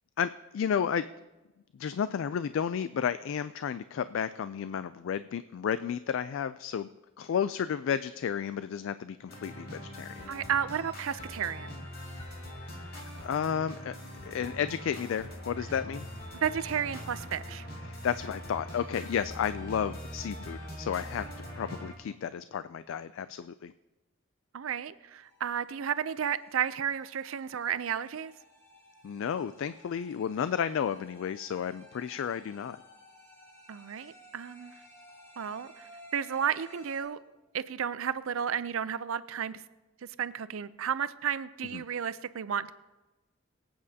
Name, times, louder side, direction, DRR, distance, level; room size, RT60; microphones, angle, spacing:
voice 1, 0.2-1.0 1.8-6.9 7.2-10.3 12.6-14.0 14.2-16.1 17.8-21.3 21.6-23.7 29.0-32.8 41.7-41.8, left 8 dB, 70° left, 13 dB, 0.3 m, -32 dB
sound 1, 9.3-21.9, equal, 50° left, 2.3 m, -42 dB
voice 2, 10.3-11.7 16.4-17.7 24.5-28.3 33.7-34.7 35.4-37.2 37.5-39.6 40.2-42.7, right 8 dB, 80° right, 15 dB, 0.5 m, -32 dB
sound 2, 25.2-37.0, equal, 15° left, 4.0 m, -56 dB
23.5 x 8.7 x 2.8 m, 1.1 s
head